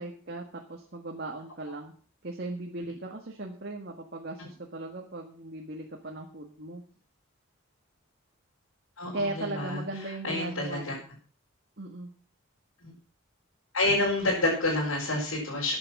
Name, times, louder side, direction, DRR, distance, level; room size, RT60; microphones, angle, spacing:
voice 1, 0.0-1.9 2.2-6.8 9.1-11.0 11.8-12.1, right 2 dB, 55° right, 1 dB, 1.7 m, -37 dB
voice 2, 9.0-10.9 12.8-12.9 13.7-15.7, left 2 dB, 85° left, -5 dB, 5.3 m, -28 dB
13.5 x 9.0 x 6.1 m, 0.43 s
head